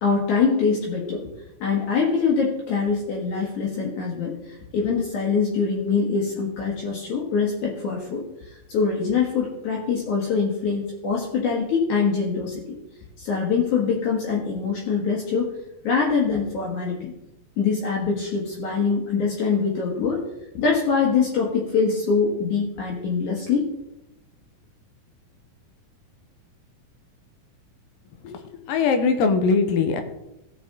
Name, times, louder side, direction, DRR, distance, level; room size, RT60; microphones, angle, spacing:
voice 1, 0.0-1.3 1.6-12.8 13.2-15.5 15.8-17.1 17.6-20.2 20.5-23.7, left 5 dB, 65° left, -3 dB, 2.6 m, -24 dB
voice 2, 28.7-30.0, left 5 dB, 80° left, 7 dB, 2.5 m, -21 dB
16.5 x 5.9 x 3.7 m, 0.91 s
omnidirectional pair, 4.0 m